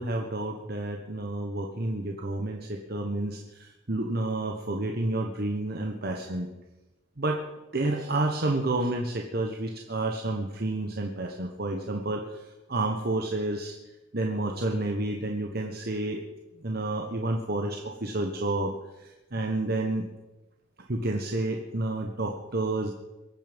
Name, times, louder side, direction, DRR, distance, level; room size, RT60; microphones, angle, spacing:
voice 1, 0.0-6.5 7.2-7.4 7.7-13.8 14.1-16.2 16.6-20.1 20.9-22.9, right 2 dB, 50° right, 2 dB, 1.2 m, -30 dB
23.0 x 9.2 x 5.3 m, 1.0 s
head